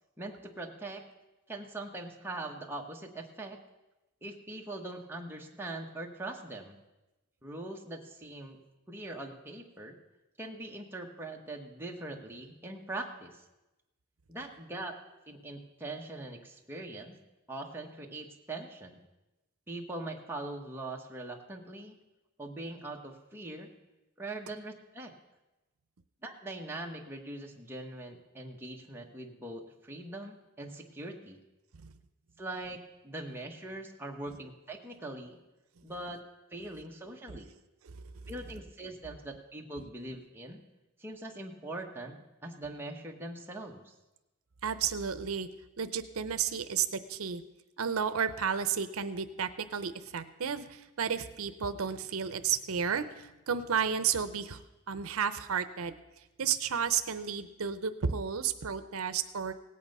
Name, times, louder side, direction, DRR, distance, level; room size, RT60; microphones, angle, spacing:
voice 1, 0.2-1.0 1.5-3.6 4.2-6.8 7.4-8.6 8.9-10.0 10.4-13.4 14.3-14.9 15.3-17.2 17.5-19.0 19.7-22.0 22.4-23.7 24.2-25.1 26.2-31.4 32.4-35.4 35.8-36.2 36.5-37.5 38.3-40.6 41.0-43.9, right 2 dB, 10° right, 0 dB, 1.2 m, -42 dB
voice 2, 44.6-45.5 45.8-47.4 47.8-54.6 54.9-55.9 56.4-59.5, right 7 dB, 80° right, 11 dB, 0.6 m, -32 dB
17.5 x 8.6 x 5.4 m, 1.0 s
head